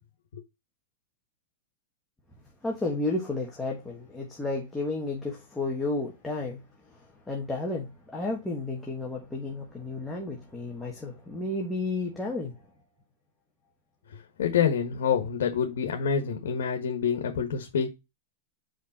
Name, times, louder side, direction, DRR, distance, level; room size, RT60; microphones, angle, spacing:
voice 1, 2.6-6.6 7.3-12.6, left 2 dB, 5° left, 1.4 m, -32 dB
voice 2, 14.4-17.9, left 7 dB, 90° left, 1.4 m, -27 dB
5.3 x 5.2 x 4.2 m
supercardioid pair, 160°, 0 cm